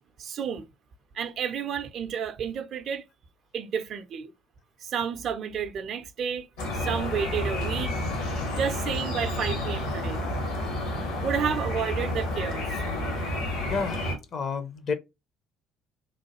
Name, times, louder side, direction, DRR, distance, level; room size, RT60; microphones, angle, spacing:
voice 1, 0.2-0.7 1.1-3.0 3.5-4.3 4.8-6.5 6.7-8.0 8.6-10.2 11.2-12.6, right 7 dB, 50° right, 0.4 m, -31 dB
sound 1, 6.6-14.2, left 1 dB, 70° left, 1.2 m, -30 dB
voice 2, 13.7-14.0 14.3-14.9, left 5 dB, 45° left, 0.6 m, -29 dB
3.1 x 2.2 x 2.9 m
figure-of-eight pair, 55°, 0 cm